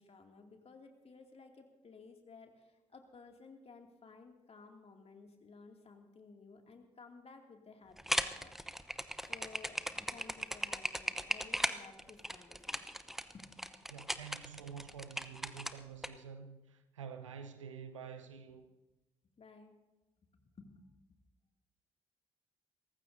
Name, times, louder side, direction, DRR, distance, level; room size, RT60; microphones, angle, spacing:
voice 1, 0.0-9.0 9.3-9.8 10.1-13.6 19.4-19.7 20.3-21.2, left 4 dB, 40° left, 2.4 m, -56 dB
sound 1, 8.0-16.1, equal, ahead, 0.8 m, -37 dB
voice 2, 13.9-18.6, right 7 dB, 90° right, 0.8 m, -48 dB
28.0 x 15.0 x 2.7 m
figure-of-eight pair, 40°, 16 cm